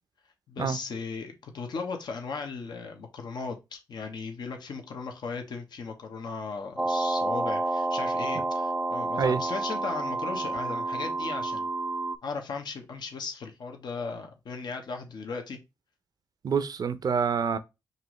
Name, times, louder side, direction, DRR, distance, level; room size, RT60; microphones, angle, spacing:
voice 1, 0.5-11.7 12.2-15.6, left 4 dB, 60° left, 1.0 m, -37 dB
sound 1, 6.8-12.2, right 2 dB, 10° right, 0.4 m, -29 dB
voice 2, 16.4-17.6, right 6 dB, 50° right, 0.6 m, -27 dB
5.5 x 2.6 x 3.1 m
supercardioid pair, 50°, 8 cm